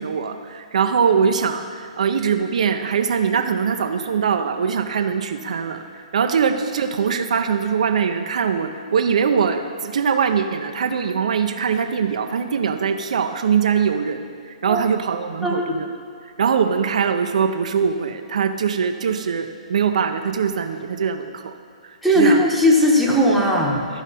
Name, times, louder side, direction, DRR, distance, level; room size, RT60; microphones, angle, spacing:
voice 1, 0.0-15.9 16.4-21.5 21.8-22.5, right 6 dB, 70° right, 6 dB, 0.6 m, -22 dB
voice 2, 15.4-15.7 22.0-23.8, equal, ahead, -3 dB, 1.3 m, -17 dB
13.5 x 5.0 x 4.2 m, 2.1 s
hypercardioid pair, 135°, 4 cm